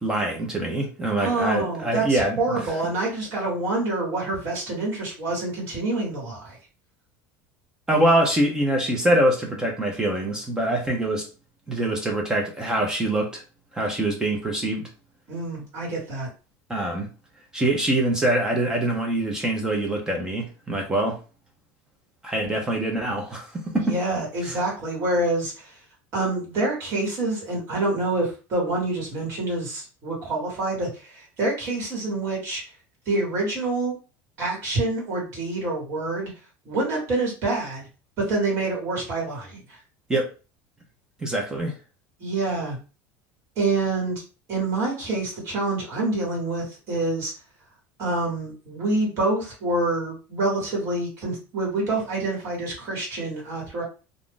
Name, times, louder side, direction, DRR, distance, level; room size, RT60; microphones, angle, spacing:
voice 1, 0.0-2.6 7.9-11.3 11.7-13.4 13.7-14.9 16.7-17.1 17.5-21.2 22.2-23.9 24.4-24.5 40.1-40.3 41.2-41.7, right 1 dB, 10° right, 1 dB, 0.5 m, -24 dB
voice 2, 1.2-6.6 15.3-16.3 23.7-25.8 26.1-32.6 33.0-33.9 34.4-36.3 36.6-37.9 38.2-39.8 42.2-42.8 43.5-44.2 44.5-47.3 48.0-53.8, right 2 dB, 35° right, -2 dB, 1.5 m, -27 dB
2.4 x 2.4 x 3.5 m, 0.33 s
cardioid pair, 175°, 7 cm